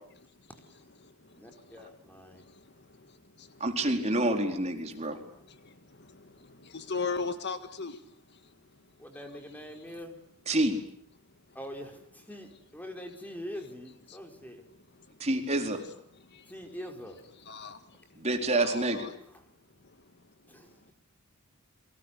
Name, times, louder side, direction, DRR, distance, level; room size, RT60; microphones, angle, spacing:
voice 1, 1.3-2.5 9.0-10.2 11.5-14.6 16.5-17.2 19.3-19.4 20.5-20.9, equal, 10° left, 4.8 m, -44 dB
voice 2, 3.6-5.2 10.5-10.8 15.2-15.8 18.2-19.1, right 1 dB, 30° right, 4.3 m, -28 dB
voice 3, 6.7-7.9 17.5-17.7 18.6-19.1, left 4 dB, 55° left, 1.7 m, -34 dB
29.5 x 24.0 x 8.4 m
head